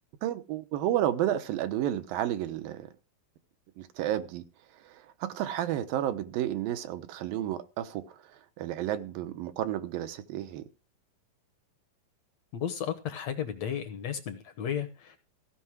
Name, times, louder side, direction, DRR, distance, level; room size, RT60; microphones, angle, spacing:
voice 1, 0.2-2.9 3.8-4.4 4.8-10.7, right 12 dB, 90° right, 2.8 m, -31 dB
voice 2, 12.5-15.2, left 8 dB, 65° left, 1.9 m, -34 dB
16.0 x 5.7 x 6.1 m
omnidirectional pair, 4.0 m